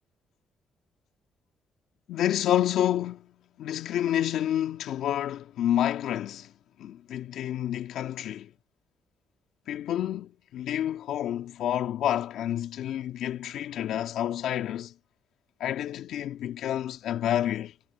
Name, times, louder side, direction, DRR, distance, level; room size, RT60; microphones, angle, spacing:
voice 1, 2.1-6.5 6.8-8.5 9.7-14.9 15.6-17.7, left 11 dB, 80° left, 2.1 m, -29 dB
cardioid pair, 90°, 0 cm